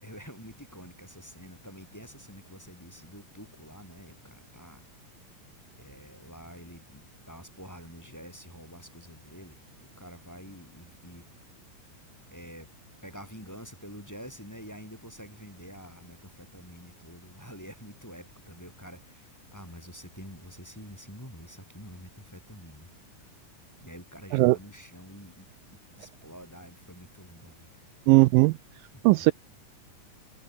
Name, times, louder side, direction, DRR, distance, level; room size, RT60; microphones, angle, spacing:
voice 1, 0.0-5.3 5.7-11.2 12.3-12.7 13.0-22.9 23.8-27.9 28.9-29.3, equal, 5° left, 4.7 m, -47 dB
voice 2, 28.1-28.6 29.0-29.3, right 21 dB, 80° right, 2.2 m, -18 dB
omnidirectional pair, 4.3 m